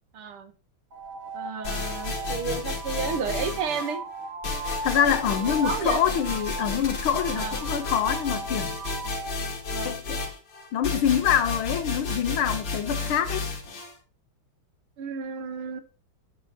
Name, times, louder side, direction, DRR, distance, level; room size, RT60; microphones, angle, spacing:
voice 1, 0.1-0.5 1.3-4.0 5.3-6.0 7.4-7.6 9.7-9.9 15.0-15.8, right 6 dB, 85° right, 2.2 m, -32 dB
sound 1, 0.9-9.3, right 2 dB, 65° right, 2.3 m, -37 dB
sound 2, 1.6-3.9 4.4-13.9, left 3 dB, 60° left, 2.7 m, -32 dB
voice 2, 4.8-8.7 9.8-10.2 10.7-13.5, left 9 dB, 75° left, 1.7 m, -25 dB
11.0 x 5.7 x 4.2 m
omnidirectional pair, 2.3 m